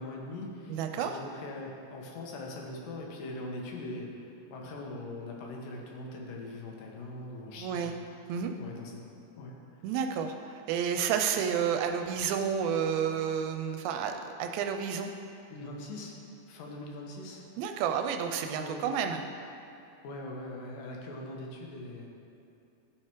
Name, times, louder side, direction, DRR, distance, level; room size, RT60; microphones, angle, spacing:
voice 1, 0.0-8.0 8.6-9.0 9.4-9.5 15.5-16.2 16.5-17.5 18.6-18.8 20.0-22.1, left 2 dB, 70° left, 0 dB, 2.5 m, -41 dB
voice 2, 0.7-1.2 7.6-8.0 8.3-8.5 9.8-15.1 17.6-19.2, right 7 dB, 85° right, 5 dB, 2.3 m, -30 dB
13.5 x 4.8 x 4.5 m, 2.6 s
omnidirectional pair, 4.4 m